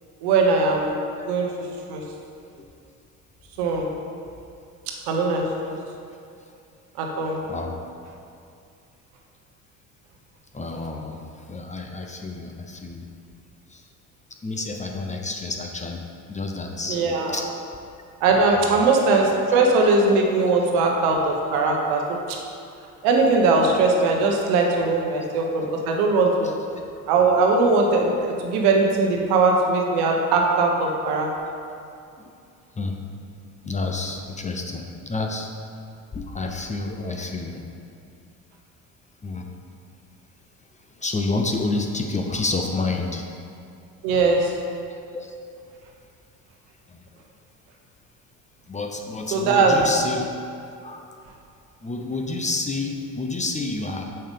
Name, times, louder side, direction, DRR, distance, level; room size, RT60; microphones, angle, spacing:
voice 1, 0.2-1.0 1.3-1.5 1.9-2.0 3.6-3.9 5.1-5.7 7.0-7.4 16.9-17.3 18.2-22.0 23.0-26.5 27.1-31.3 44.0-44.5 49.3-49.8, right 3 dB, 75° right, 1 dB, 1.1 m, -20 dB
voice 2, 7.5-7.8 10.5-11.2 11.5-13.0 13.7-13.8 14.4-16.0 16.3-17.0 17.3-17.4 18.5-18.8 20.4-20.5 25.1-25.2 26.7-26.8 32.2-32.3 32.8-33.0 33.6-35.5 36.1-37.6 39.2-39.5 41.0-43.3 45.1-45.3 46.9-47.0 48.7-50.3 50.8-51.1 51.8-54.0, left 3 dB, 20° left, 2 dB, 0.7 m, -29 dB
6.7 x 5.3 x 3.6 m, 2.5 s
hypercardioid pair, 65°, 40 cm